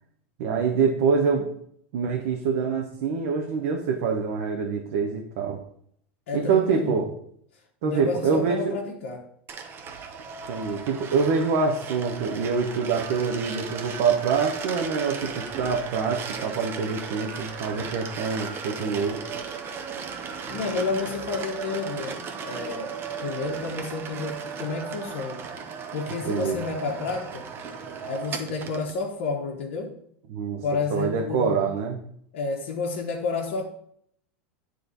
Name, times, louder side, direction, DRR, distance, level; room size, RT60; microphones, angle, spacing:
voice 1, 0.4-1.5 1.9-5.6 6.3-7.1 7.8-8.7 10.5-19.2 26.2-26.6 30.3-30.6 30.9-32.0, right 5 dB, 70° right, 1.0 m, -25 dB
voice 2, 6.3-7.0 7.8-9.2 20.5-25.4 25.9-27.5 28.0-30.0 30.6-31.7 32.3-33.6, left 4 dB, 70° left, 1.0 m, -30 dB
sound 1, 9.5-29.0, right 6 dB, 35° right, 1.0 m, -36 dB
9.2 x 3.2 x 4.0 m
hypercardioid pair, 115°, 7 cm